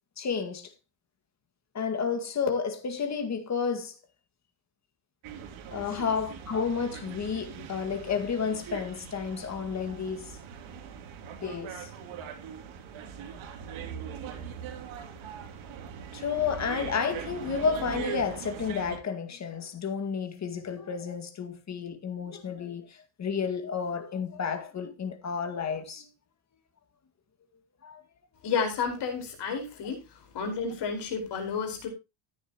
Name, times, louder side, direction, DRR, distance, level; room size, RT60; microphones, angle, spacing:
voice 1, 0.2-0.7 1.7-3.9 5.7-10.3 11.4-11.9 16.1-26.1 27.8-28.0, left 6 dB, 35° left, 2.1 m, -31 dB
sound 1, 5.2-19.0, right 8 dB, 70° right, 3.0 m, -41 dB
voice 2, 28.4-30.0 30.3-31.9, left 5 dB, 55° left, 4.8 m, -31 dB
14.0 x 9.9 x 3.0 m
cardioid pair, 150°, 49 cm